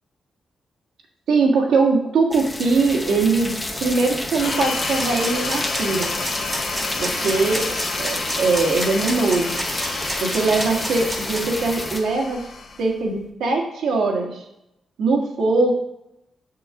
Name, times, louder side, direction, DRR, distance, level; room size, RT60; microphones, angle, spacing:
voice 1, 1.3-3.5 3.8-6.1 7.0-9.6 10.2-12.5 12.8-14.4 15.0-15.7, right 3 dB, 85° right, 1 dB, 1.7 m, -21 dB
sound 1, 2.3-12.0, left 1 dB, 10° left, 0.8 m, -30 dB
sound 2, 4.4-13.2, left 4 dB, 75° left, 1.3 m, -31 dB
sound 3, 4.9-11.6, right 1 dB, 20° right, 1.1 m, -32 dB
7.2 x 6.7 x 3.6 m, 0.85 s
wide cardioid pair, 165°, 0 cm